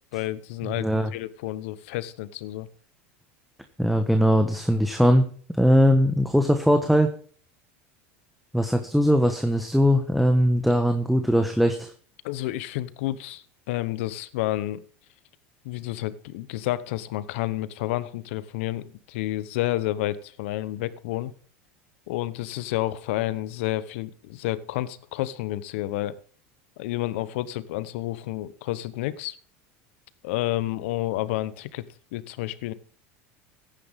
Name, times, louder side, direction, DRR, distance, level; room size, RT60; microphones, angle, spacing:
voice 1, 0.1-2.7 12.2-14.8 15.6-21.3 22.1-26.2 26.8-29.4 30.2-31.8 32.1-32.7, left 15 dB, 75° left, 16 dB, 0.9 m, -30 dB
voice 2, 0.6-1.1 3.8-7.1 8.5-11.9, equal, ahead, 6 dB, 1.3 m, -20 dB
15.0 x 10.0 x 3.6 m, 0.43 s
hypercardioid pair, 95°, 7 cm